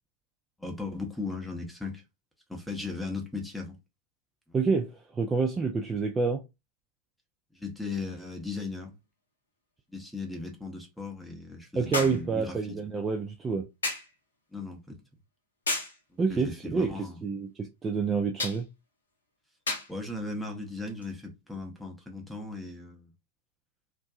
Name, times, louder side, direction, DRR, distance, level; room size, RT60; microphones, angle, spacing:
voice 1, 0.6-2.0 2.5-3.8 7.5-8.9 9.9-12.8 14.5-15.0 16.3-17.2 19.9-23.1, left 3 dB, 5° left, 0.7 m, -37 dB
voice 2, 4.5-6.4 11.8-13.7 16.2-18.7, right 4 dB, 20° right, 0.3 m, -28 dB
sound 1, 8.1-8.2 11.9-12.3 13.8-14.1 15.7-16.0 18.4-18.6 19.7-19.9 21.0-21.1, left 2 dB, 70° left, 0.7 m, -31 dB
2.5 x 2.2 x 2.3 m
figure-of-eight pair, 90°, 0 cm